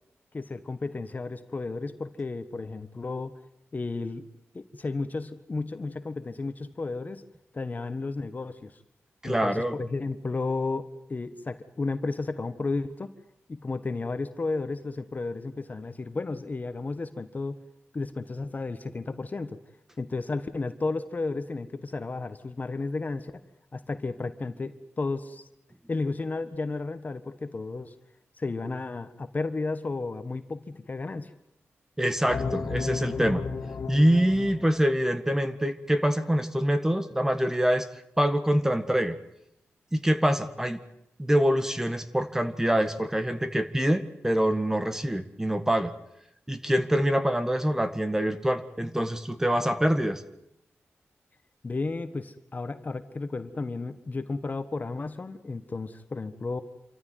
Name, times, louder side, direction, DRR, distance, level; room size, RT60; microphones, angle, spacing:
voice 1, 0.3-3.3 3.7-4.3 4.5-7.2 7.5-8.7 9.2-13.1 13.5-17.6 17.9-19.6 20.0-23.4 23.7-25.4 25.9-27.9 28.4-31.3 51.6-56.6, left 3 dB, 35° left, 10 dB, 1.5 m, -33 dB
voice 2, 9.2-9.8 32.0-33.4 33.9-37.9 38.2-39.2 39.9-40.8 41.2-45.9 46.5-50.2, equal, 10° right, 9 dB, 1.7 m, -25 dB
sound 1, 32.3-35.0, left 4 dB, 65° left, 2.6 m, -33 dB
27.5 x 14.5 x 9.5 m, 0.81 s
wide cardioid pair, 100°, 5 cm